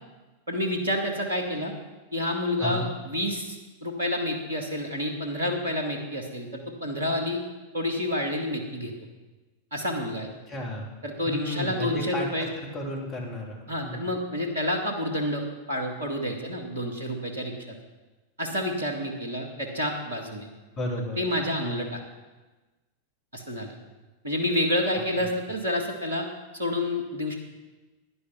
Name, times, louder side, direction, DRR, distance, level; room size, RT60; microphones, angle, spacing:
voice 1, 0.5-1.7 2.1-7.4 7.7-8.9 9.7-10.3 11.0-12.5 13.7-17.5 18.4-20.5 21.2-22.0 23.3-23.8 24.2-26.3 26.5-27.3, left 1 dB, 75° right, 3 dB, 2.0 m, -29 dB
voice 2, 10.5-10.9 11.3-14.1 20.8-21.2 21.6-21.9 24.9-25.2, left 1 dB, 25° left, -1 dB, 3.2 m, -33 dB
11.0 x 10.0 x 6.0 m, 1.2 s
figure-of-eight pair, 90°, 0 cm